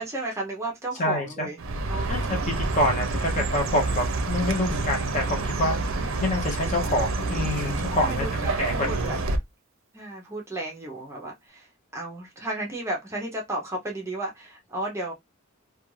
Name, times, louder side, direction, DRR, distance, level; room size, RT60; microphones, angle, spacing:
voice 1, 0.0-1.6 1.9-2.4 5.6-6.3 7.9-9.2 9.9-15.1, right 1 dB, 15° right, 0.5 m, -34 dB
voice 2, 1.0-1.5 2.1-5.8 6.2-8.3 8.6-9.2, left 1 dB, 35° left, 0.7 m, -27 dB
Chirp tweet, 1.6-9.4, right 3 dB, 70° right, 0.5 m, -28 dB
2.4 x 2.2 x 3.0 m
head